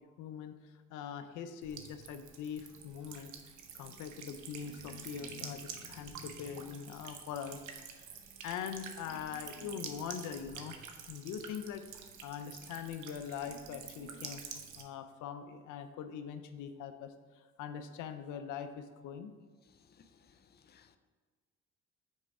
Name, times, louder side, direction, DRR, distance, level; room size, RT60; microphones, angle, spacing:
voice 1, 0.2-3.3 3.7-7.6 7.9-8.1 8.4-10.8 11.1-11.8 12.2-14.4 14.8-19.3, left 8 dB, 90° left, 8 dB, 0.6 m, -42 dB
Buzz / Water tap faucet / Trickle dribble, 1.6-14.8, right 7 dB, 80° right, 0.9 m, -48 dB
voice 2, 19.9-21.0, left 6 dB, 35° left, 9 dB, 0.5 m, -64 dB
6.3 x 4.5 x 4.7 m, 1.5 s
cardioid pair, 90°, 30 cm